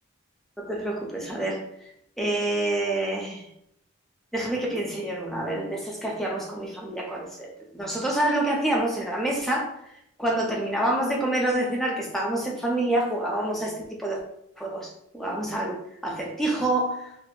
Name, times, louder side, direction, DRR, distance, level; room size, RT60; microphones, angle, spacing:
voice 1, 0.6-1.6 2.2-3.5 4.3-7.5 7.7-9.7 10.2-14.2 14.6-17.3, right 1 dB, ahead, -2 dB, 0.3 m, -27 dB
2.6 x 2.1 x 2.3 m, 0.76 s
head